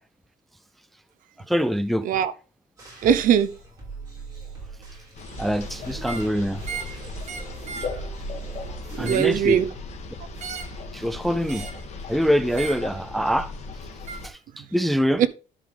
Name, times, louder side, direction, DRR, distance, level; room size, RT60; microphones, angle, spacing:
voice 1, 1.5-2.1 5.4-6.6 9.0-9.6 10.9-11.7 12.1-13.5 14.2-15.2, equal, ahead, 0.4 m, -24 dB
sound 1, 2.8-9.1, right 4 dB, 25° right, 5.5 m, -40 dB
voice 2, 3.0-3.5 7.7-8.1 9.0-9.7 15.2-15.3, right 9 dB, 65° right, 0.9 m, -21 dB
sound 2, 5.1-14.3, left 3 dB, 50° left, 2.2 m, -37 dB
sound 3, 6.0-6.3 6.6-7.0 7.2-7.9 8.8-9.4 10.4-10.8 11.5-11.8 12.5-12.9 14.1-14.2, right 6 dB, 50° right, 1.7 m, -36 dB
12.0 x 4.9 x 3.5 m
cardioid pair, 155°, 15 cm